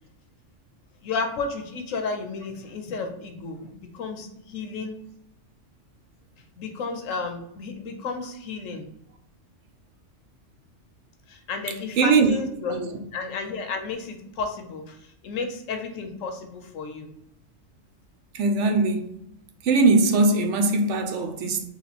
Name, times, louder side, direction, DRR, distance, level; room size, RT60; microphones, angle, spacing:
voice 1, 1.0-5.0 6.6-8.9 11.3-12.8 13.1-17.1, left 4 dB, 80° left, 1.1 m, -32 dB
voice 2, 12.0-12.4 12.7-13.0 18.3-19.1 19.6-21.7, right 3 dB, 70° right, 0.9 m, -21 dB
3.1 x 3.0 x 4.1 m
omnidirectional pair, 1.3 m